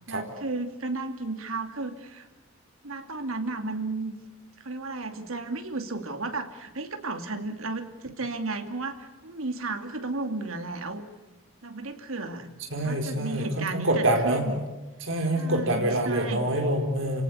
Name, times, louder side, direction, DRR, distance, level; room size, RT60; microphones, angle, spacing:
voice 1, 0.1-2.3 2.8-4.1 4.6-11.0 11.6-12.5 12.8-14.6 15.3-16.4, right 3 dB, 80° right, 7 dB, 2.5 m, -33 dB
voice 2, 12.7-14.4 15.0-17.2, right 1 dB, 65° right, 2 dB, 4.3 m, -26 dB
29.5 x 18.0 x 9.5 m, 1.1 s
head